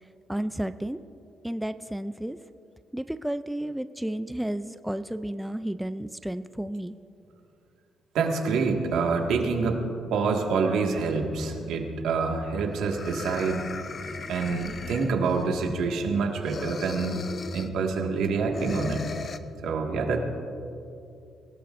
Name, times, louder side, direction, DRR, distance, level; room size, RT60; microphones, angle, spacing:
voice 1, 0.3-1.0 1.4-2.4 2.9-6.9, right 1 dB, 5° right, 11 dB, 0.3 m, -32 dB
voice 2, 8.1-9.8 10.1-13.7 14.3-17.2 17.5-19.0 19.6-20.2, right 4 dB, 90° right, 1 dB, 1.8 m, -26 dB
sound 1, 12.2-12.3 12.7-15.5 16.4-17.8 18.5-19.4, left 5 dB, 35° left, 0.6 m, -38 dB
25.0 x 16.5 x 2.6 m, 2.7 s
cardioid pair, 150°, 0 cm